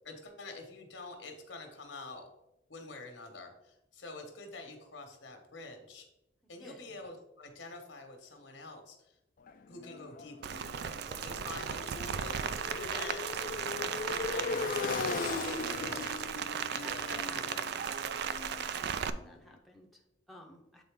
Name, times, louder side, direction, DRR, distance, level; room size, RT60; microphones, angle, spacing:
voice 1, 0.0-2.3 2.7-6.1 6.5-9.1 9.7-10.8 11.2-13.2 14.1-16.2 16.7-17.6, left 3 dB, 75° left, 5 dB, 1.2 m, -47 dB
voice 2, 6.4-7.0 12.8-13.1 16.8-18.0 18.7-20.8, left 1 dB, ahead, 0 dB, 0.6 m, -53 dB
Motorcycle, 9.5-19.3, left 4 dB, 45° left, 0.4 m, -39 dB
Rain, 10.4-19.1, right 7 dB, 60° right, 0.3 m, -36 dB
7.8 x 4.0 x 3.5 m, 0.87 s
head